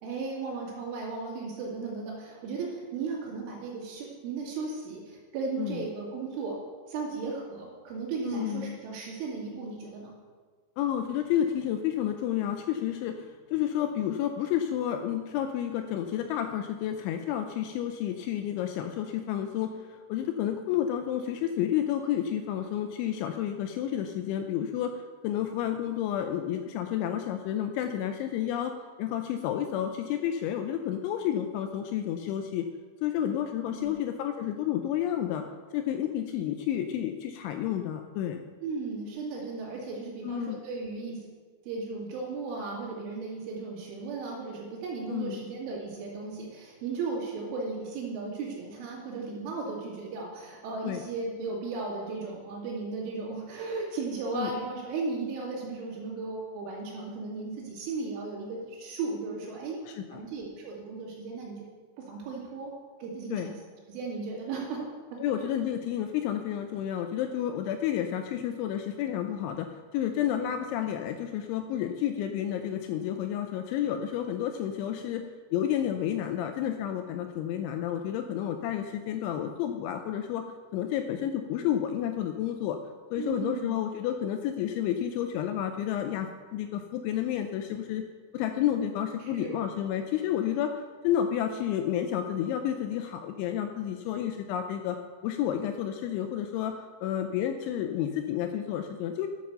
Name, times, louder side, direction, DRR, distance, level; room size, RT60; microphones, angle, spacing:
voice 1, 0.0-6.6 6.9-10.1 33.1-33.3 33.7-33.9 38.6-41.3 41.6-59.8 60.1-61.7 62.0-63.6 63.9-65.2 83.2-83.7 89.2-89.6 89.9-90.1, right 4 dB, 70° right, -3 dB, 4.9 m, -36 dB
voice 2, 8.2-8.8 10.8-25.0 25.2-28.7 29.0-32.7 33.0-35.4 35.7-38.5 40.2-40.6 45.1-45.4 50.8-51.0 54.3-54.5 59.9-60.2 63.3-63.5 65.2-75.2 75.5-80.5 80.7-82.8 83.1-88.0 88.3-95.0 95.2-99.3, left 10 dB, 85° left, 7 dB, 2.7 m, -30 dB
11.0 x 7.7 x 6.8 m, 1.5 s
omnidirectional pair, 5.8 m